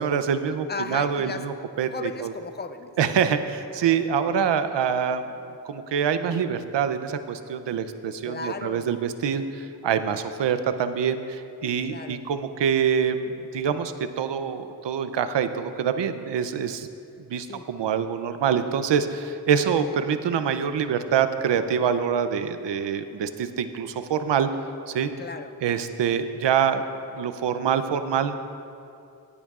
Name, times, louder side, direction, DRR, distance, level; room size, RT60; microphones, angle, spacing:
voice 1, 0.0-2.3 3.0-5.2 5.6-16.9 17.3-24.5 24.9-25.1 25.6-26.8 27.2-28.4, right 7 dB, 80° right, 10 dB, 0.6 m, -25 dB
voice 2, 0.7-1.4 1.9-2.9 8.2-8.9 11.8-12.2 17.5-17.7 25.2-25.6, left 4 dB, 25° left, 9 dB, 0.5 m, -35 dB
17.0 x 9.9 x 2.4 m, 2.6 s
wide cardioid pair, 95°, 42 cm